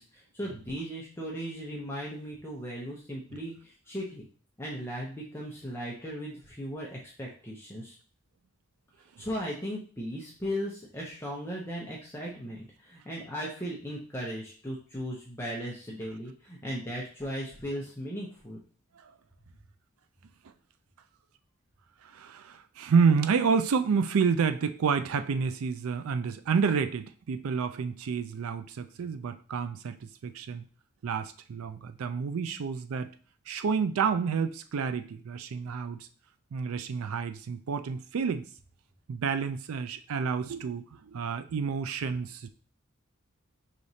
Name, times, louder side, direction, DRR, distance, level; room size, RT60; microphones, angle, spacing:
voice 1, 0.0-4.2 4.6-8.0 9.2-18.6, equal, 10° left, -4 dB, 0.6 m, -37 dB
voice 2, 22.0-30.6 31.0-33.1 33.5-36.1 36.5-38.4 39.1-42.5, right 5 dB, 85° right, 10 dB, 0.4 m, -29 dB
4.8 x 3.0 x 2.7 m, 0.40 s
head